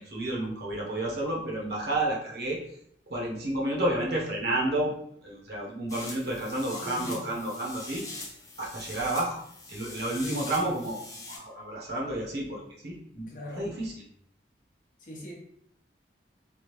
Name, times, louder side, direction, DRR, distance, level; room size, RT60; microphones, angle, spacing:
voice 1, 0.0-2.6 3.1-4.9 5.2-8.2 8.6-9.4 9.7-11.0 11.3-13.3 13.6-13.9, right 1 dB, 60° right, -2 dB, 0.8 m, -31 dB
sound 1, 5.9-11.4, left 2 dB, 20° left, 0.5 m, -43 dB
voice 2, 6.8-7.3 10.1-10.7 13.3-13.7 15.0-15.3, equal, 45° left, -2 dB, 0.8 m, -40 dB
3.4 x 2.3 x 2.9 m, 0.68 s
head